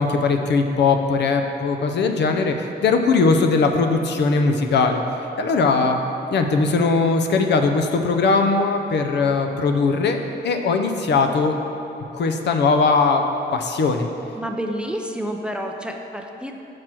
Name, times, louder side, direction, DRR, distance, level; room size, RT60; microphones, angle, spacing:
voice 1, 0.0-5.0 5.4-6.0 6.3-10.2 10.4-11.6 12.1-13.2 13.5-14.1, left 4 dB, 70° left, 5 dB, 0.6 m, -19 dB
voice 2, 14.4-16.5, equal, 5° right, 3 dB, 0.4 m, -29 dB
6.0 x 4.7 x 6.0 m, 2.9 s
cardioid pair, 115°, 19 cm